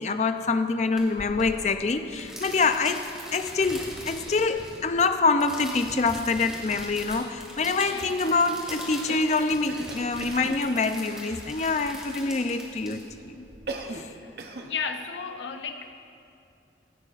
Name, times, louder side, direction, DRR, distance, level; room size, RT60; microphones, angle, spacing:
voice 1, 0.0-13.5 13.9-14.1, left 4 dB, 40° left, 9 dB, 0.5 m, -26 dB
sound 1, 1.0-13.6, equal, 5° right, 2.0 m, -41 dB
Cough, 9.1-10.6 13.7-14.1 14.4-14.7, right 3 dB, 60° right, 0.8 m, -37 dB
voice 2, 14.6-15.9, left 6 dB, 80° left, 6 dB, 0.7 m, -34 dB
16.5 x 13.0 x 2.5 m, 2.5 s
head